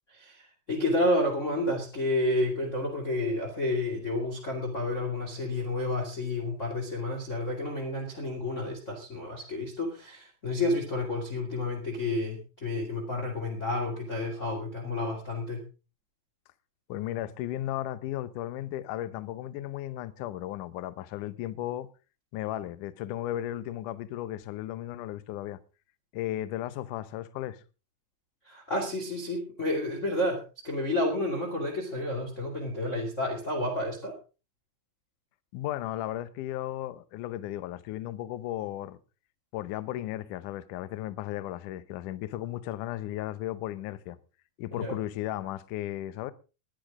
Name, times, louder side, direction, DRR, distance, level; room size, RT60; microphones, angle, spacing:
voice 1, 0.1-15.6 28.4-34.1 44.7-45.0, left 1 dB, 20° left, 2.3 m, -30 dB
voice 2, 16.9-21.9 22.3-25.6 26.1-27.6 35.5-39.0 39.5-44.2 44.6-46.3, left 13 dB, 75° left, 2.0 m, -35 dB
20.5 x 10.5 x 3.7 m
omnidirectional pair, 4.4 m